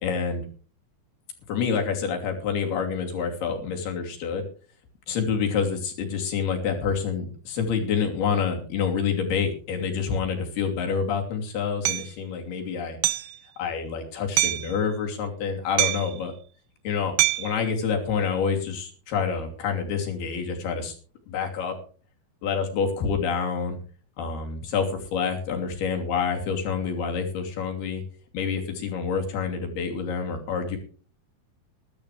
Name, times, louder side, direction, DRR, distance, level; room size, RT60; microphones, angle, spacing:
voice 1, 0.0-0.4 1.5-4.5 5.1-13.0 13.6-16.3 16.8-20.9 21.3-21.8 22.4-23.8 24.2-28.0 28.3-30.8, left 6 dB, 85° left, 2 dB, 4.9 m, -27 dB
Hammer, 11.8-12.1 13.0-13.3 14.4-14.7 15.8-16.2 17.2-17.6, right 17 dB, 90° right, 2.9 m, -24 dB
21.0 x 12.0 x 3.3 m, 0.41 s
omnidirectional pair, 4.4 m